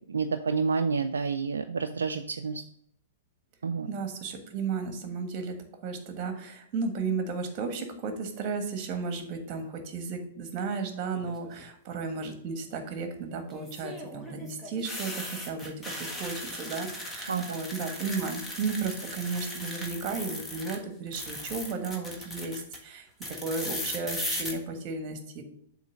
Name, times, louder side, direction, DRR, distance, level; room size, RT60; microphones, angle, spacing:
voice 1, 0.1-2.6 3.6-3.9 17.3-17.4, right 5 dB, 75° right, 7 dB, 0.4 m, -29 dB
voice 2, 3.9-5.6 5.8-23.1 23.4-25.4, right 4 dB, 40° right, 6 dB, 1.4 m, -34 dB
sound 1, 11.1-11.6 13.5-20.8 21.1-22.8 23.2-24.5, left 1 dB, 10° left, 1.4 m, -38 dB
7.4 x 3.2 x 6.3 m, 0.69 s
figure-of-eight pair, 105°, 0 cm